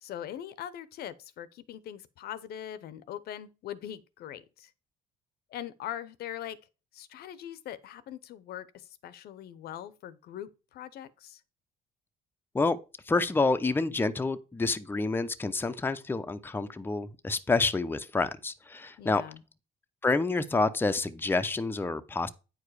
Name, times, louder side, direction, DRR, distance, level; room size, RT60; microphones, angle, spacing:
voice 1, 0.0-4.7 5.5-6.6 6.9-11.4 19.0-19.4, left 11 dB, 70° left, 0.8 m, -41 dB
voice 2, 13.1-19.2 20.0-22.3, left 3 dB, 10° left, 0.7 m, -28 dB
9.3 x 4.8 x 4.8 m
cardioid pair, 110°, 17 cm